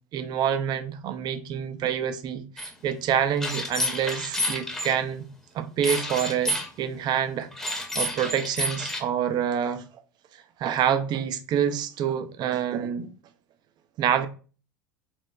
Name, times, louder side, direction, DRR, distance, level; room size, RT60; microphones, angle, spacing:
voice 1, 0.1-5.2 5.5-7.7 8.0-9.8 10.6-13.1 14.0-14.3, right 9 dB, 45° right, 0.5 m, -27 dB
sound 1, 2.6-2.7 3.4-4.9 5.8-6.7 7.5-9.0, left 1 dB, 5° left, 0.8 m, -29 dB
4.3 x 2.1 x 2.2 m
hypercardioid pair, 80°, 10 cm